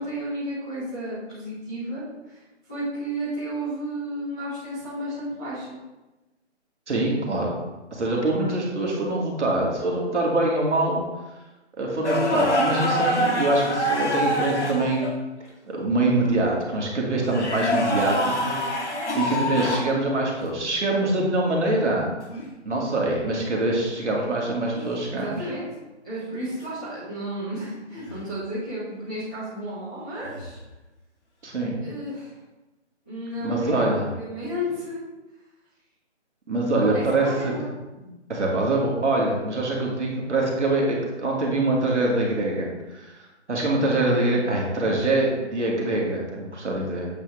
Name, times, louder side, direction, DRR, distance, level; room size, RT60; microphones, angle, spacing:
voice 1, 0.0-2.4 2.7-5.8 25.1-25.8 26.0-30.6 31.8-32.3 33.0-35.0 36.6-37.6 44.1-44.4, equal, 5° right, -19 dB, 0.9 m, -32 dB
voice 2, 6.9-7.5 7.9-11.0 11.8-15.1 15.7-22.1 22.6-25.4 31.4-31.8 33.4-34.1 36.5-37.5 38.0-43.1 43.5-47.1, right 2 dB, 75° right, -2 dB, 2.2 m, -24 dB
sound 1, 12.0-15.1 17.2-19.9 22.3-22.5 24.7-25.1 28.0-28.2 30.2-30.5, equal, 75° left, 1.6 m, -26 dB
8.1 x 3.7 x 4.7 m, 1.1 s
hypercardioid pair, 180°, 35 cm